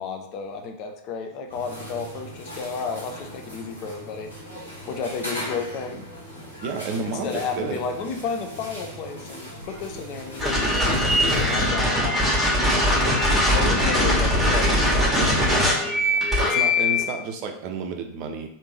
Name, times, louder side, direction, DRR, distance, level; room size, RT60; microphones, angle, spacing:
voice 1, 0.0-4.3 4.9-6.0 7.2-13.0 13.5-14.8 15.5-16.2, left 5 dB, 40° left, 4 dB, 0.5 m, -32 dB
sound 1, 1.5-11.6, equal, 85° left, 1.4 m, -39 dB
voice 2, 6.6-7.8 13.6-14.6 16.4-18.5, right 4 dB, 40° right, 5 dB, 0.5 m, -31 dB
sound 2, 10.4-17.0, left 1 dB, ahead, 1.4 m, -21 dB
3.4 x 2.7 x 3.3 m, 0.74 s
figure-of-eight pair, 90°, 0 cm